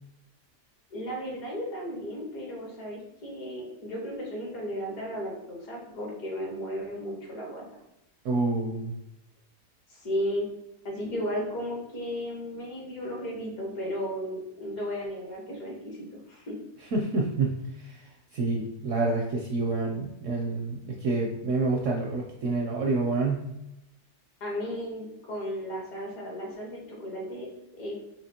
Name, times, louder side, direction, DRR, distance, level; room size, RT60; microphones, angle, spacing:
voice 1, 0.9-7.8 9.9-10.5 10.9-16.6 24.4-27.5 27.8-28.0, equal, 60° left, -2 dB, 1.7 m, -34 dB
voice 2, 8.2-8.9 16.9-18.0 18.3-23.4, right 3 dB, 65° right, 0 dB, 0.8 m, -28 dB
5.8 x 2.9 x 2.8 m, 0.86 s
omnidirectional pair, 1.8 m